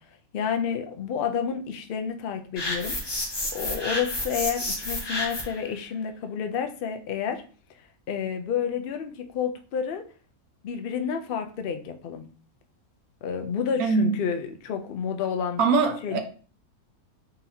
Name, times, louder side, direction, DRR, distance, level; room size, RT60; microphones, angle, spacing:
voice 1, 0.3-2.9 3.5-7.4 8.1-10.0 10.6-12.2 13.2-15.6 16.0-16.2, left 7 dB, 70° left, 0.5 m, -30 dB
sound 1, 2.6-5.6, left 1 dB, 25° left, 0.6 m, -30 dB
voice 2, 13.8-14.2 15.6-16.2, right 5 dB, 80° right, 1.2 m, -22 dB
4.1 x 3.9 x 2.7 m
omnidirectional pair, 1.6 m